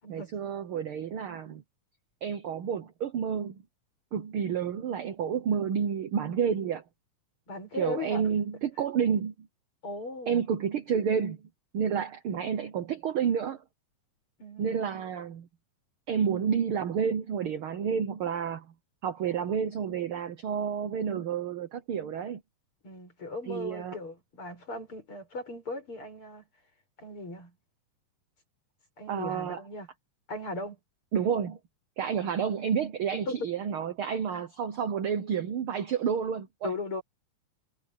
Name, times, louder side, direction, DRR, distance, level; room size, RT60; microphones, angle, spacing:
voice 1, 0.1-1.6 2.2-3.6 4.1-6.8 7.7-9.5 10.3-11.5 11.7-13.6 14.6-15.5 16.1-18.7 19.0-22.4 23.5-24.0 29.1-29.6 31.1-31.6 32.0-36.7, right 7 dB, 65° right, 1.4 m, -30 dB
voice 2, 7.5-8.2 9.8-10.4 14.4-14.8 22.8-26.5 27.0-27.5 29.0-29.9 30.3-30.8 33.1-33.4 36.6-37.0, left 2 dB, 40° left, 7.8 m, -38 dB
omnidirectional pair, 3.7 m